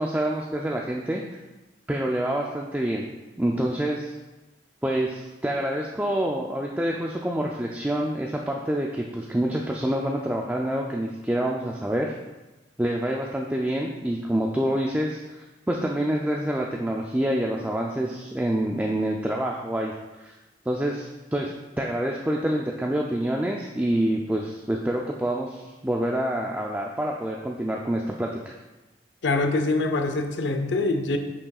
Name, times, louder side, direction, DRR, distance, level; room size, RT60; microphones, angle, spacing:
voice 1, 0.0-1.4 1.9-3.1 3.4-4.1 4.8-12.1 12.8-19.9 20.2-20.4 20.7-28.5, right 1 dB, 10° right, -1 dB, 0.3 m, -27 dB
voice 2, 29.2-31.2, left 2 dB, 85° left, 6 dB, 0.6 m, -24 dB
8.4 x 5.4 x 2.3 m, 1.1 s
head